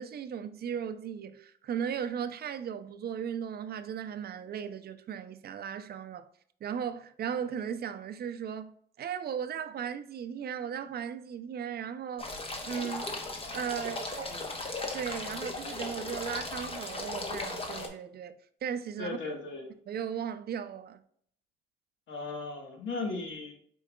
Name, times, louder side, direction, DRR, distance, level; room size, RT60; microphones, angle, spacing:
voice 1, 0.0-6.3 6.6-12.3 12.6-13.1 13.5-14.3 14.9-19.2 19.9-21.0, right 8 dB, 55° right, 0.5 m, -36 dB
sound 1, 12.2-17.9, left 2 dB, 30° left, 1.0 m, -37 dB
voice 2, 19.0-19.7 22.1-23.5, left 3 dB, 70° left, 1.4 m, -37 dB
4.7 x 4.5 x 2.3 m
cardioid pair, 90°, 20 cm